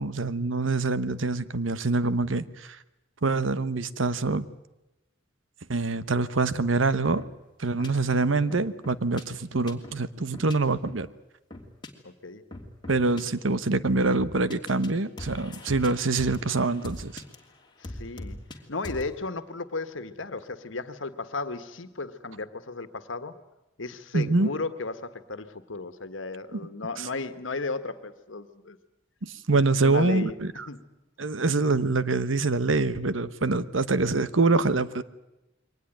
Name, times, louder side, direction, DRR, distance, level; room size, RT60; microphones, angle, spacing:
voice 1, 0.0-2.8 3.2-4.5 5.7-7.2 7.6-11.1 12.9-17.2 24.1-24.5 26.5-26.6 27.0-27.1 29.2-30.5 31.2-35.0, right 3 dB, 85° right, 15 dB, 1.1 m, -25 dB
sound 1, 7.2-7.3 7.8-7.9 8.5-9.2 9.7-10.0 10.3-10.5 10.8-11.0 11.5-11.9 12.5-13.2 13.8-14.9 15.2-17.4 17.8-18.6 18.8-19.1, left 1 dB, 25° left, 2.9 m, -40 dB
voice 2, 12.0-12.4 17.8-18.4 18.7-23.4 23.8-28.8 29.5-30.3 30.7-30.8, left 3 dB, 80° left, 11 dB, 1.6 m, -35 dB
23.0 x 19.0 x 9.2 m, 0.95 s
head